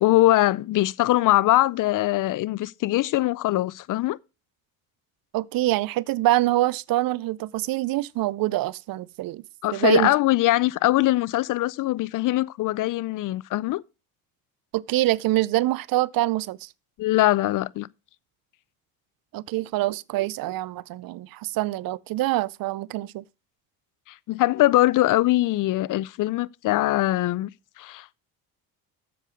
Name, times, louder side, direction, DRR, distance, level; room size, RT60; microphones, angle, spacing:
voice 1, 0.0-4.2 9.6-13.8 17.0-17.9 24.1-27.5 27.8-28.1, left 16 dB, 50° left, 0.5 m, -22 dB
voice 2, 5.3-9.4 9.7-10.1 14.7-16.7 19.3-23.2, right 16 dB, 55° right, 0.6 m, -25 dB
7.6 x 6.8 x 6.3 m
supercardioid pair, 80°, 41 cm